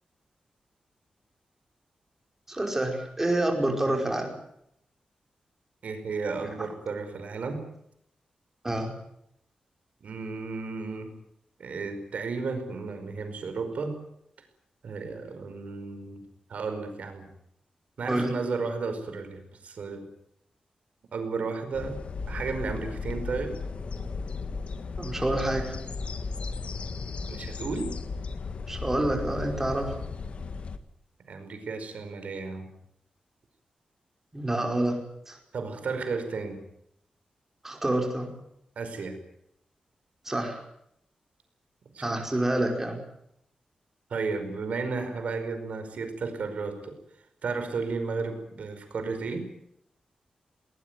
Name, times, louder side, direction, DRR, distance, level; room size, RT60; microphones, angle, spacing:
voice 1, 2.5-4.3 8.6-8.9 18.1-18.3 25.0-25.7 28.7-30.0 34.3-35.0 35.3-35.4 37.6-38.3 40.3-40.6 42.0-43.0, right 1 dB, 15° right, 3 dB, 5.4 m, -27 dB
voice 2, 5.8-7.7 10.0-11.1 11.6-14.0 14.4-14.5 14.8-16.2 16.5-17.3 18.0-20.1 21.1-22.0 22.3-23.6 27.3-28.0 31.3-32.7 35.5-36.7 38.8-39.2 41.9-42.3 44.1-49.5, right 4 dB, 70° right, 7 dB, 5.1 m, -33 dB
sound 1, 21.7-30.8, left 4 dB, 55° left, 1.7 m, -35 dB
20.0 x 20.0 x 9.5 m, 0.74 s
wide cardioid pair, 140°, 2 cm